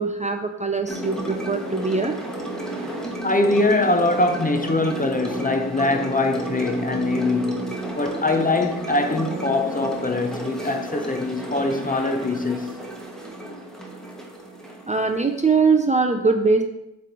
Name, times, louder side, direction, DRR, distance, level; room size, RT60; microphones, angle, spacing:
voice 1, 0.0-2.1 14.9-16.6, right 4 dB, 15° right, 0.5 m, -21 dB
sound 1, 0.9-15.6, right 2 dB, ahead, 1.3 m, -32 dB
voice 2, 3.2-12.8, left 2 dB, 20° left, 0.7 m, -23 dB
7.4 x 3.4 x 3.9 m
supercardioid pair, 55°, 43 cm